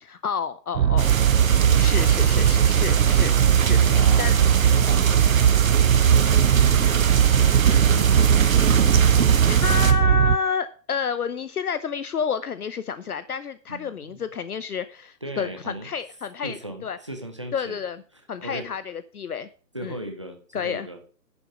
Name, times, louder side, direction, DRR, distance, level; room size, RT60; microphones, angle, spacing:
voice 1, 0.0-1.2 1.8-3.8 4.2-4.3 9.5-16.6 16.8-17.0 17.5-18.0 18.3-19.5 19.8-20.0 20.5-21.1, left 6 dB, 60° left, 13 dB, 0.8 m, -30 dB
sound 1, 0.7-10.4, right 9 dB, 75° right, 0.7 m, -18 dB
sound 2, 1.0-9.9, right 6 dB, 50° right, 1.5 m, -26 dB
voice 2, 1.5-2.1 3.4-8.4 13.7-14.2 15.2-15.9 16.4-17.8 18.4-18.7 19.7-21.0, right 1 dB, 20° right, 5 dB, 0.7 m, -38 dB
11.5 x 7.1 x 4.9 m, 0.40 s
hypercardioid pair, 175°, 50 cm